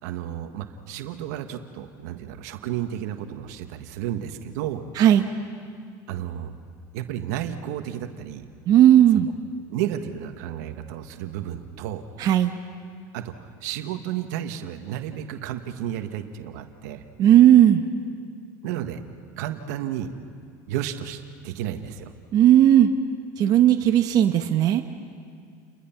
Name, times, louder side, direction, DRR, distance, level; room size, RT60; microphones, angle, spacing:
voice 1, 0.0-4.9 6.1-6.5 6.9-8.4 9.7-12.0 13.1-17.0 18.6-19.0 19.4-20.1 20.7-22.1, right 11 dB, 75° right, 7 dB, 1.6 m, -32 dB
voice 2, 5.0-5.3 8.7-9.3 12.2-12.5 17.2-17.8 22.3-22.9 23.4-24.8, right 11 dB, 50° right, 5 dB, 1.2 m, -16 dB
30.0 x 21.5 x 5.9 m, 2.2 s
supercardioid pair, 110°, 9 cm